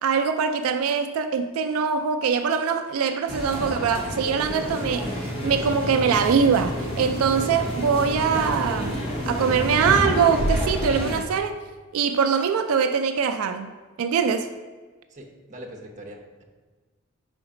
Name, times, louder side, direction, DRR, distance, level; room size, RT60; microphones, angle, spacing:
voice 1, 0.0-5.2 5.4-11.6 11.9-13.7 14.0-14.5, right 6 dB, 85° right, 8 dB, 0.3 m, -23 dB
sound 1, 3.3-11.2, left 1 dB, 25° left, 0.9 m, -30 dB
Engine, 4.6-9.8, equal, 85° left, 1.2 m, -33 dB
voice 2, 15.1-16.4, right 1 dB, 35° right, 0 dB, 0.8 m, -42 dB
5.1 x 3.9 x 4.9 m, 1.4 s
head